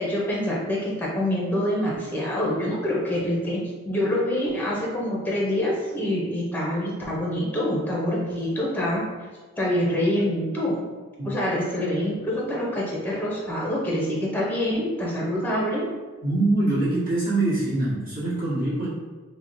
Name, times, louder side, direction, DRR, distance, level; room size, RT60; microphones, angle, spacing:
voice 1, 0.0-3.6 3.9-9.0 9.6-10.8 11.2-15.8, left 1 dB, 10° left, -4 dB, 0.6 m, -26 dB
voice 2, 16.2-18.9, right 2 dB, 45° right, -10 dB, 1.3 m, -24 dB
4.4 x 2.1 x 2.6 m, 1.3 s
head